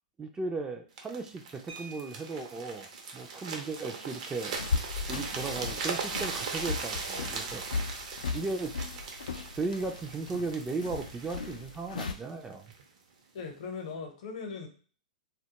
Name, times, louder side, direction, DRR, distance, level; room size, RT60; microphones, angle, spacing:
voice 1, 0.2-2.9 3.1-4.5 5.1-7.6 8.3-8.8 9.4-12.7, right 3 dB, 15° right, 4 dB, 0.3 m, -36 dB
sound 1, 1.0-12.8 13.4-13.6, right 4 dB, 55° right, 0.6 m, -39 dB
sound 2, 1.7-2.8 4.2-4.3 4.7-4.9 5.2-5.5, right 4 dB, 80° right, 0.8 m, -50 dB
sound 3, 4.6-12.1, left 4 dB, 80° left, 0.3 m, -37 dB
voice 2, 13.3-14.7, left 5 dB, 65° left, 3 dB, 0.7 m, -39 dB
2.2 x 2.0 x 2.8 m, 0.40 s
hypercardioid pair, 110°, 4 cm